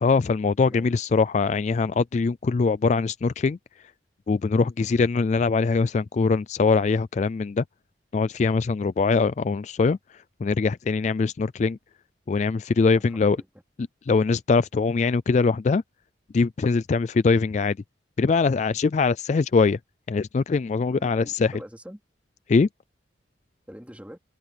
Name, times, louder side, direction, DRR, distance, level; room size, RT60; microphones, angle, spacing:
voice 1, 0.0-3.6 4.3-7.6 8.1-11.8 12.3-13.4 14.1-15.8 16.3-17.8 18.2-19.8 20.1-21.5 22.5-22.7, left 4 dB, 40° left, 0.3 m, -22 dB
voice 2, 12.9-13.5 20.9-22.0 23.7-24.2, equal, 5° right, 3.8 m, -44 dB
head